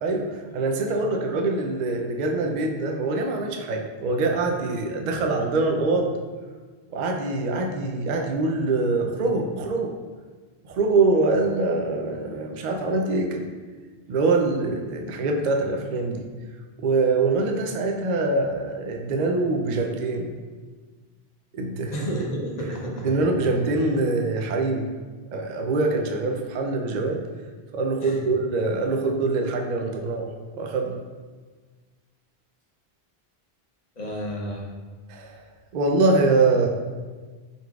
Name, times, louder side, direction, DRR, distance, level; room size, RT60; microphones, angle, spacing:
voice 1, 0.0-6.1 6.9-9.9 10.6-13.5 14.1-16.2 16.8-20.4 21.5-22.1 23.0-24.9 25.3-27.2 27.7-30.9 35.1-35.4 35.7-36.7, right 3 dB, 55° right, 2 dB, 0.5 m, -24 dB
voice 2, 21.9-23.3 28.0-28.2 34.0-34.7, equal, 45° left, -2 dB, 0.7 m, -31 dB
4.6 x 4.0 x 2.3 m, 1.4 s
omnidirectional pair, 1.0 m